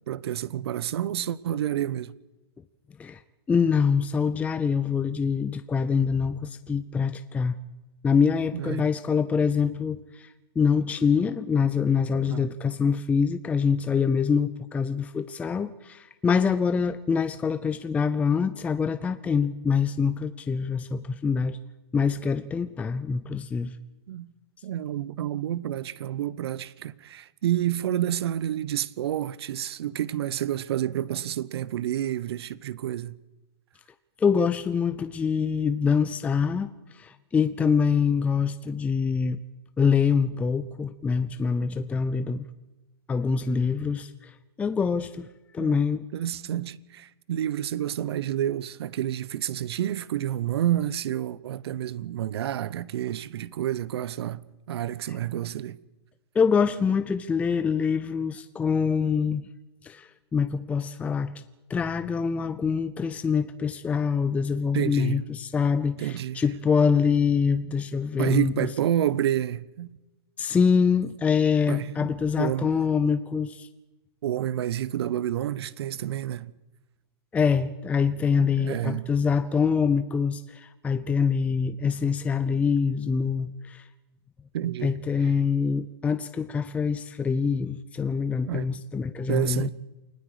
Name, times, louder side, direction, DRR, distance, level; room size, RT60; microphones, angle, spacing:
voice 1, 0.1-2.1 8.5-8.9 12.1-12.5 24.1-24.3 24.6-33.2 45.6-45.8 46.1-55.8 64.7-65.2 66.0-66.4 68.2-69.9 71.7-72.7 74.2-76.5 78.4-79.1 84.5-84.9 88.5-88.7 89.3-89.7, right 11 dB, 65° right, 0.9 m, -29 dB
voice 2, 3.5-7.6 8.0-21.6 21.9-23.8 34.2-39.4 39.8-42.5 43.1-45.3 45.5-46.0 56.3-59.5 59.8-61.3 61.7-68.7 70.4-73.7 77.3-83.8 84.8-89.7, left 6 dB, 10° left, 0.6 m, -25 dB
29.0 x 19.5 x 5.0 m
hypercardioid pair, 145°, 14 cm